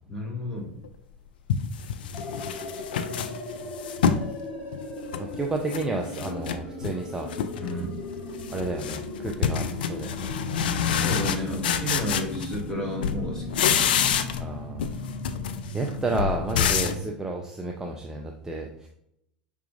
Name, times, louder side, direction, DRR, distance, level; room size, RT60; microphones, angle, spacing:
voice 1, 0.1-0.7 3.0-3.5 7.6-8.0 10.9-13.9 15.5-15.7, equal, 10° left, -2 dB, 1.8 m, -33 dB
sound 1, 0.8-0.9 1.5-4.3 4.7-5.8 6.1-7.0 7.3-7.7 8.0-12.8 13.0-14.5 14.8-17.0, left 8 dB, 75° left, 0.4 m, -27 dB
sound 2, 2.1-17.0, left 2 dB, 40° left, 1.4 m, -37 dB
voice 2, 5.2-7.3 8.5-10.3 14.3-15.0 15.7-18.9, right 2 dB, 10° right, 1 dB, 0.5 m, -31 dB
5.7 x 3.6 x 2.5 m, 0.77 s
hypercardioid pair, 90°, 5 cm